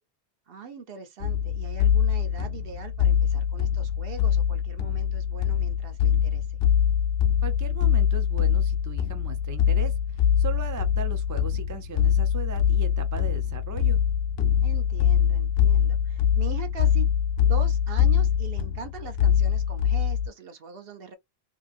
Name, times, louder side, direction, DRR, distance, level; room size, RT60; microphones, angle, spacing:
voice 1, 0.5-6.6 14.6-17.1 17.4-21.1, right 5 dB, 70° right, 0.9 m, -41 dB
sound 1, 1.2-20.3, left 9 dB, 80° left, 0.8 m, -23 dB
voice 2, 7.4-14.0, right 4 dB, 30° right, 0.3 m, -38 dB
2.8 x 2.6 x 2.4 m
omnidirectional pair, 1.0 m